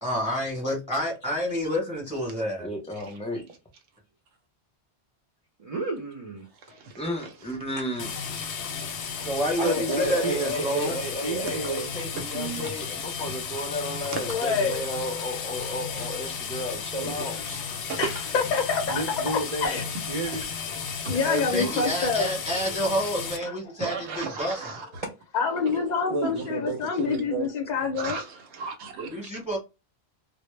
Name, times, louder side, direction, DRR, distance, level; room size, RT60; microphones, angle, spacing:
voice 1, 0.0-2.7 9.2-11.0 21.2-24.6 29.1-29.6, equal, 5° right, 0.9 m, -28 dB
voice 2, 2.6-3.4 7.0-8.1 9.6-17.4, left 1 dB, 10° left, 0.4 m, -33 dB
voice 3, 5.6-6.5 9.6-11.9 16.9-17.1 18.9-20.5 23.4-23.5 25.0-25.1 26.1-27.5, right 3 dB, 45° right, 0.5 m, -32 dB
voice 4, 6.6-7.3 12.1-12.9 14.1-14.4 17.0-18.1 21.0-21.2 21.6-21.9 23.8-25.0 25.7-25.8 26.2-26.3 27.9-29.3, right 5 dB, 85° right, 0.9 m, -36 dB
sound 1, 8.0-23.4, left 6 dB, 90° left, 0.9 m, -34 dB
voice 5, 14.3-14.8 17.4-17.5 18.0-19.9 21.1-22.3 23.5-23.6 24.0-24.1 25.3-28.2, left 5 dB, 55° left, 0.5 m, -27 dB
2.0 x 2.0 x 3.0 m
omnidirectional pair, 1.1 m